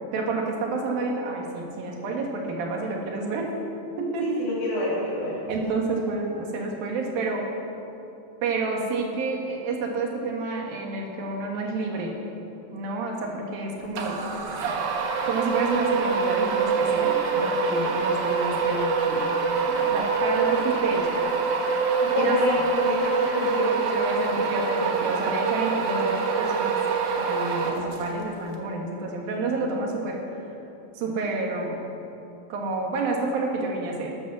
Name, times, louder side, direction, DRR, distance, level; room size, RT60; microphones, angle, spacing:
voice 1, 0.1-3.5 4.0-4.4 5.5-7.4 8.4-12.1 12.7-14.2 15.3-19.2 19.7-21.3 22.2-22.4 23.6-26.8 27.2-30.2 31.0-31.8 32.5-34.1, right 3 dB, 85° right, 0 dB, 3.6 m, -29 dB
voice 2, 4.2-5.4 22.0-23.8, left 1 dB, 90° left, -9 dB, 4.6 m, -27 dB
sound 1, 14.0-28.2, right 5 dB, 65° right, 2.5 m, -25 dB
13.5 x 11.5 x 6.4 m, 2.9 s
omnidirectional pair, 4.1 m